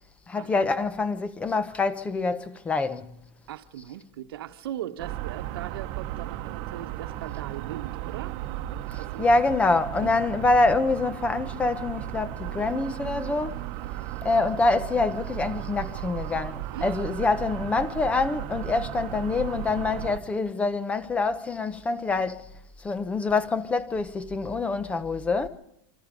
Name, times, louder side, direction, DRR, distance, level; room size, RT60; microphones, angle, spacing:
voice 1, 0.3-3.1 9.2-13.6 14.2-22.5 22.8-25.5, left 3 dB, 10° left, 0.8 m, -25 dB
voice 2, 3.5-8.4 9.0-9.3 9.9-10.1 16.7-17.1, right 12 dB, 80° right, 1.4 m, -39 dB
sound 1, 5.0-20.2, right 14 dB, 40° right, 1.1 m, -35 dB
26.5 x 26.0 x 5.3 m
supercardioid pair, 165°, 12 cm